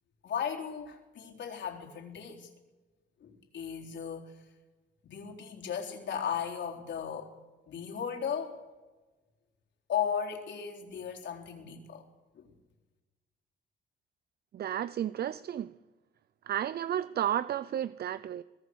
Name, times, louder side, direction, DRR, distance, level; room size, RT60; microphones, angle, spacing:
voice 1, 0.2-2.5 3.2-4.4 5.0-7.3 7.7-8.6 9.9-12.1 12.4-12.5, left 8 dB, 65° left, 4.0 m, -36 dB
voice 2, 14.5-15.7 16.5-18.4, right 10 dB, 55° right, 0.6 m, -32 dB
23.0 x 20.5 x 6.4 m
cardioid pair, 90°, 20 cm